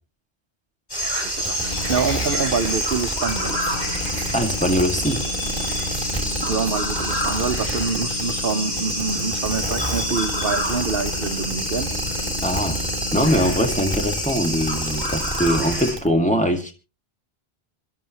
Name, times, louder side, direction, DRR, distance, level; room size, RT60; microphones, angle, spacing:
sound 1, 0.9-15.9, equal, 45° left, 6.2 m, -27 dB
sound 2, 1.4-16.1, right 1 dB, 25° right, 2.9 m, -31 dB
voice 1, 1.4-3.7 6.4-11.9, right 5 dB, 65° right, 9 dB, 1.1 m, -26 dB
sound 3, 1.5-2.7 3.2-14.1, left 5 dB, 65° left, 1.7 m, -35 dB
voice 2, 4.3-5.2 12.4-12.8 13.1-16.7, equal, 5° left, 1 dB, 2.1 m, -22 dB
25.0 x 12.0 x 3.0 m, 0.31 s
omnidirectional pair, 1.0 m